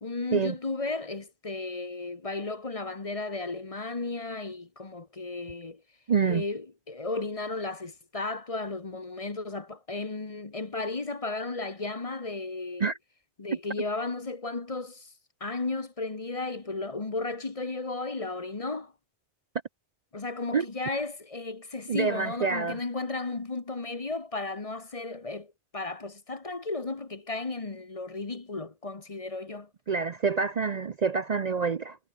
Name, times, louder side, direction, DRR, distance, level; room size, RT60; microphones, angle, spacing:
voice 1, 0.0-5.8 6.2-12.9 13.4-15.1 15.4-18.9 20.1-29.7, left 3 dB, 30° left, 1.2 m, -34 dB
voice 2, 6.1-6.4 12.8-13.0 20.5-20.7 21.9-22.8 29.9-32.0, right 5 dB, 45° right, 0.7 m, -27 dB
omnidirectional pair, 1.1 m